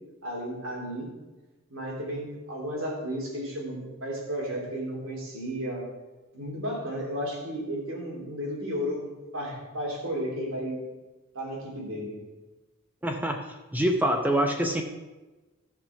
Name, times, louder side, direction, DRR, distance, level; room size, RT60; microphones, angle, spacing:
voice 1, 0.2-1.1 1.7-5.8 6.3-10.8 11.3-12.2, equal, 80° right, -3 dB, 3.5 m, -33 dB
voice 2, 13.0-13.4 13.7-14.8, right 1 dB, 10° right, 3 dB, 0.7 m, -25 dB
13.5 x 5.9 x 5.9 m, 1.2 s
head